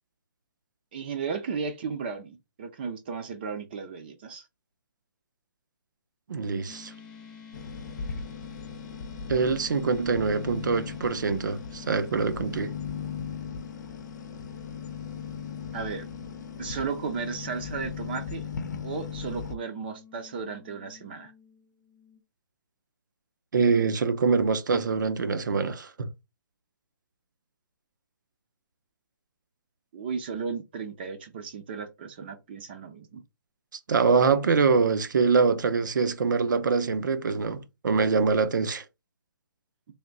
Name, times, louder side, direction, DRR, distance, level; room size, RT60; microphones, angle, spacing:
voice 1, 0.9-4.5 15.7-16.1 16.6-18.4 18.8-21.3 29.9-33.2, right 5 dB, 30° right, 0.5 m, -35 dB
voice 2, 6.3-6.9 9.3-12.7 23.5-26.1 33.9-38.8, right 5 dB, 70° right, 0.7 m, -24 dB
sound 1, 6.7-22.2, left 7 dB, 10° left, 0.7 m, -50 dB
sound 2, 7.5-19.6, left 6 dB, 60° left, 0.7 m, -38 dB
3.4 x 2.7 x 3.9 m
hypercardioid pair, 165°, 11 cm